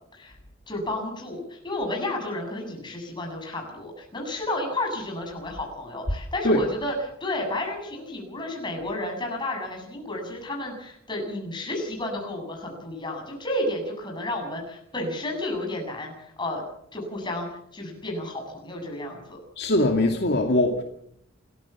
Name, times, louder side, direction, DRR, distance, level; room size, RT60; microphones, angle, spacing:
voice 1, 0.7-6.9 7.2-16.6 16.9-17.5 17.7-19.4, left 1 dB, 25° left, 2 dB, 7.8 m, -31 dB
voice 2, 19.6-20.8, left 1 dB, 55° left, 3 dB, 2.4 m, -21 dB
28.0 x 15.0 x 7.4 m, 0.71 s
head